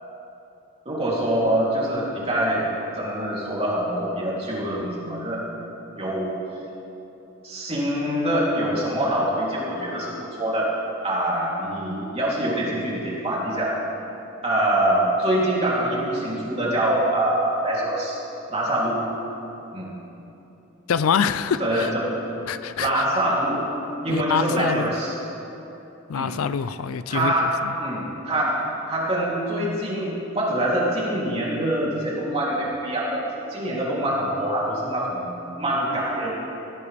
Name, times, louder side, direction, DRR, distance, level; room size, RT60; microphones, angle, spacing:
voice 1, 0.8-2.6 2.9-5.4 6.0-6.3 7.4-10.7 11.0-13.8 14.4-18.2 18.5-19.0 19.7-19.9 21.6-22.0 22.8-23.6 24.0-25.1 26.1-26.3 27.1-28.6 28.9-36.3, right 1 dB, 30° right, -5 dB, 3.0 m, -24 dB
voice 2, 20.9-21.9 22.5-23.0 24.1-24.9 26.1-27.7, left 6 dB, 85° left, 13 dB, 0.4 m, -25 dB
18.0 x 13.5 x 3.4 m, 3.0 s
head